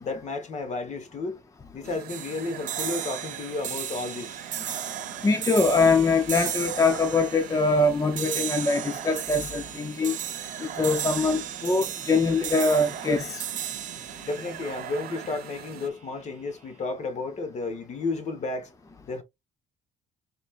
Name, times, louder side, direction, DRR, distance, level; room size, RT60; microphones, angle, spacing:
voice 1, 0.0-1.4 1.7-4.4 14.2-18.7 19.1-19.2, left 3 dB, 45° left, 1.5 m, -32 dB
sound 1, 1.8-15.9, right 9 dB, 65° right, 1.2 m, -41 dB
sound 2, 2.1-15.5, right 10 dB, 50° right, 0.9 m, -36 dB
voice 2, 5.2-10.2 10.6-13.5, left 3 dB, 20° left, 0.8 m, -23 dB
4.4 x 4.3 x 2.6 m
cardioid pair, 110°, 17 cm